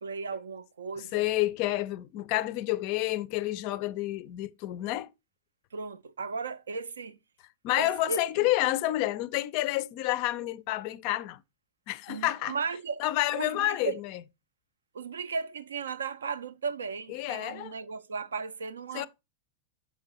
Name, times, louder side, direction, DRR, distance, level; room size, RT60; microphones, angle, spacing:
voice 1, 0.0-1.3 5.7-7.2 7.7-8.5 12.1-13.0 13.3-14.0 14.9-19.1, right 5 dB, 70° right, 0.4 m, -36 dB
voice 2, 1.1-5.1 7.6-11.4 11.9-12.6 13.0-14.1 17.1-17.7 18.9-19.1, left 16 dB, 45° left, 0.4 m, -29 dB
6.8 x 5.1 x 2.8 m
figure-of-eight pair, 90°, 0 cm